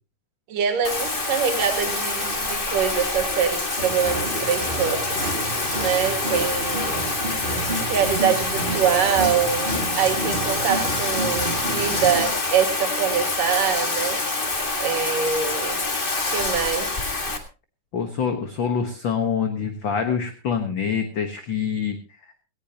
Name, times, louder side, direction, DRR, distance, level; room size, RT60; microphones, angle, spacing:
voice 1, 0.5-5.3 5.8-7.0 7.9-14.2 14.8-15.8 16.3-16.9, right 8 dB, 90° right, 6 dB, 3.6 m, -24 dB
Bathtub (filling or washing), 0.8-17.4, left 3 dB, 30° left, 1.0 m, -26 dB
sound 1, 3.8-12.2, right 2 dB, 15° right, 3.0 m, -31 dB
voice 2, 17.9-22.0, left 6 dB, 50° left, 6 dB, 1.5 m, -25 dB
18.0 x 17.5 x 2.9 m, 0.32 s
omnidirectional pair, 3.7 m